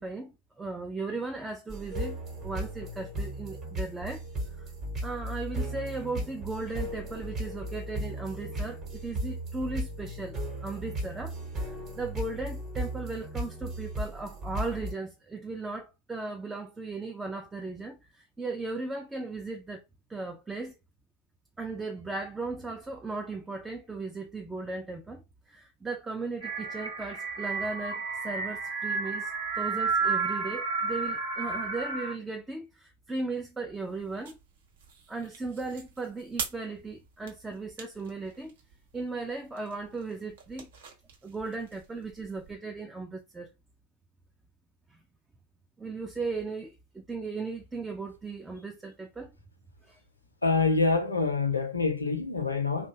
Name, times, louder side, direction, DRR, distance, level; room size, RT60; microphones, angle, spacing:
voice 1, 0.0-4.2 4.6-4.7 5.0-19.8 20.1-20.8 21.6-29.3 29.6-34.4 35.1-38.5 38.9-40.7 41.2-43.5 44.9-45.0 45.8-49.3 49.9-50.0, right 3 dB, 10° right, 0.4 m, -37 dB
sound 1, 1.7-14.9, right 1 dB, 25° right, 1.0 m, -36 dB
sound 2, 26.4-32.1, right 4 dB, 80° right, 1.0 m, -31 dB
sound 3, 33.7-42.6, right 5 dB, 60° right, 0.7 m, -46 dB
voice 2, 50.4-52.9, left 4 dB, 80° left, 0.6 m, -26 dB
2.6 x 2.2 x 2.8 m
figure-of-eight pair, 90°, 0 cm